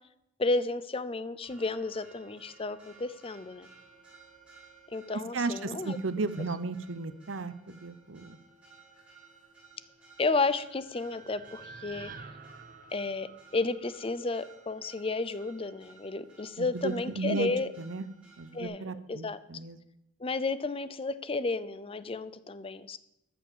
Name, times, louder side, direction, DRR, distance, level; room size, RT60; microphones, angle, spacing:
voice 1, 0.4-3.7 4.9-6.0 10.2-12.1 12.9-17.7 18.5-19.4 20.2-23.0, left 3 dB, 30° left, 15 dB, 0.5 m, -32 dB
Church bell, 1.4-18.7, right 5 dB, 5° right, 4.5 m, -57 dB
voice 2, 5.3-8.4 16.6-18.1 18.4-19.8, right 3 dB, 85° right, 13 dB, 0.7 m, -34 dB
sound 1, 10.5-14.6, right 5 dB, 45° right, 0.9 m, -50 dB
13.0 x 7.0 x 7.3 m, 0.85 s
head